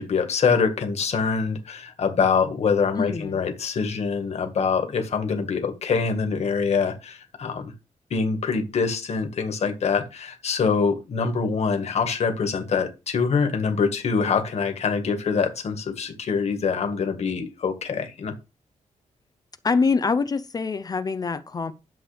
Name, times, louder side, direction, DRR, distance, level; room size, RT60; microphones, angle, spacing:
voice 1, 0.0-7.7 8.1-18.3, left 5 dB, 55° left, 1.7 m, -24 dB
voice 2, 3.0-3.4 19.6-21.7, left 4 dB, 30° left, 0.5 m, -24 dB
11.0 x 7.1 x 3.4 m
wide cardioid pair, 180°, 13 cm